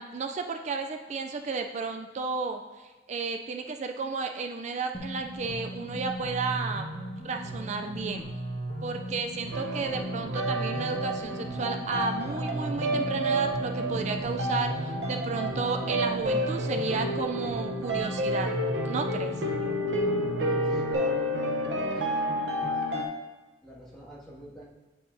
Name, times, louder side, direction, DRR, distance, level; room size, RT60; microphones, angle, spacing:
voice 1, 0.0-6.9 7.2-8.3 8.8-18.5 18.8-19.3, right 4 dB, 40° right, 5 dB, 0.3 m, -33 dB
sound 1, 4.9-20.9, right 1 dB, 40° left, 1.5 m, -37 dB
sound 2, 9.5-23.0, equal, 90° right, 0.8 m, -30 dB
voice 2, 20.6-22.2 22.5-22.8 23.6-24.6, left 1 dB, 5° left, -9 dB, 1.9 m, -45 dB
9.0 x 5.5 x 2.7 m, 1.3 s
head